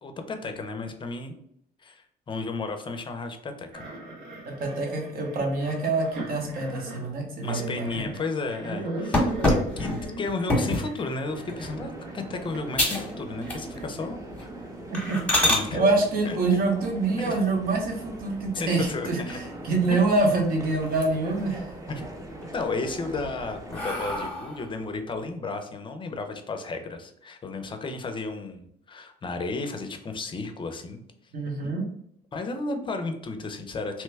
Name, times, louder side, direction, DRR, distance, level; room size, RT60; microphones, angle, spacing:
voice 1, 0.0-1.3 1.8-3.8 7.4-9.9 10.2-14.5 15.4-15.8 16.3-16.4 17.1-17.4 18.5-19.4 21.9-22.0 22.5-31.0 32.3-34.0, left 3 dB, 30° left, 6 dB, 0.5 m, -33 dB
sound 1, 3.7-12.7 13.0-18.5 18.8-19.3 19.9-20.0 21.2-21.7, right 2 dB, 90° right, 1.1 m, -40 dB
voice 2, 4.5-8.1 14.9-15.2 15.7-21.6 31.3-31.8, right 3 dB, 60° right, 1 dB, 1.0 m, -26 dB
sound 2, 9.1-10.9 11.5-11.8 12.2-12.3 12.7-13.1 13.4-13.9 14.3-14.4 14.9-15.6 17.7-18.3 18.8-18.9 19.3-19.4 19.7-20.5 20.8-21.4 21.8-22.5 23.0-24.7, left 1 dB, 5° left, 1.0 m, -27 dB
sound 3, 11.2-24.3, right 1 dB, 20° right, 0.7 m, -41 dB
3.0 x 2.2 x 3.3 m, 0.71 s
cardioid pair, 110°, 17 cm